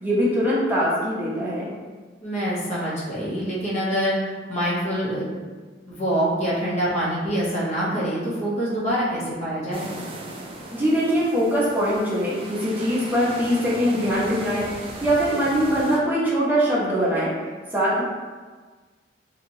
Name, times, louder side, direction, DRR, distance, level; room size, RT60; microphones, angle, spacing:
voice 1, 0.0-1.7 10.7-17.3 17.7-18.0, equal, 10° right, -8 dB, 0.8 m, -22 dB
voice 2, 2.2-5.3 5.9-9.9, equal, 40° left, -8 dB, 0.9 m, -25 dB
sound 1, 9.7-16.0, right 2 dB, 30° right, 0.4 m, -38 dB
2.9 x 2.8 x 2.7 m, 1.4 s
head